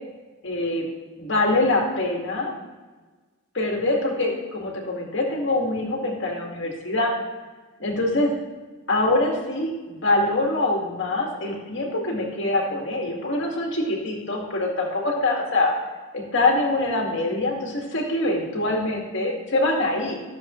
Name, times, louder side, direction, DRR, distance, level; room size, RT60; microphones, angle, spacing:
voice 1, 0.4-0.8 1.2-2.6 3.5-7.1 7.8-8.3 8.9-15.7 16.1-20.1, left 2 dB, 55° left, -1 dB, 2.1 m, -24 dB
13.5 x 7.1 x 3.1 m, 1.3 s
head